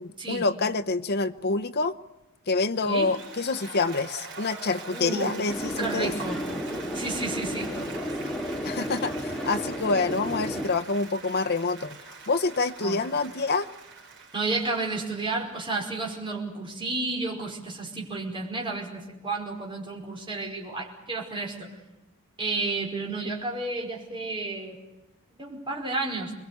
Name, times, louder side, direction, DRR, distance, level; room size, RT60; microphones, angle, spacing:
voice 1, 0.0-2.0 2.5-6.1 8.6-12.0 12.3-13.7, left 3 dB, 50° left, 0.9 m, -27 dB
Applause, 2.7-15.9, right 4 dB, 55° right, 4.8 m, -44 dB
voice 2, 4.9-5.3 5.8-6.4 6.9-7.7 12.8-13.0 14.3-21.7 22.4-24.8 25.4-26.3, right 3 dB, 25° right, 5.1 m, -31 dB
sound 1, 5.5-10.7, equal, ahead, 2.5 m, -32 dB
27.5 x 21.0 x 8.4 m
head